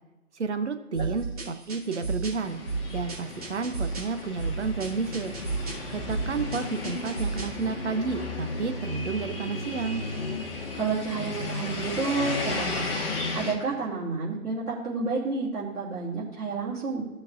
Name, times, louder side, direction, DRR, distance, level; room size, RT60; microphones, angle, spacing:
voice 1, 0.3-2.6 2.9-5.3 5.9-10.0, right 4 dB, 50° right, 8 dB, 0.9 m, -31 dB
sound 1, 0.9-7.6, right 3 dB, 25° right, 1.7 m, -34 dB
sound 2, 2.4-13.5, left 3 dB, 40° left, 1.7 m, -34 dB
voice 2, 10.7-13.1 13.3-17.0, right 4 dB, 75° right, -7 dB, 3.1 m, -30 dB
16.5 x 6.3 x 2.6 m, 1.1 s
figure-of-eight pair, 165°, 44 cm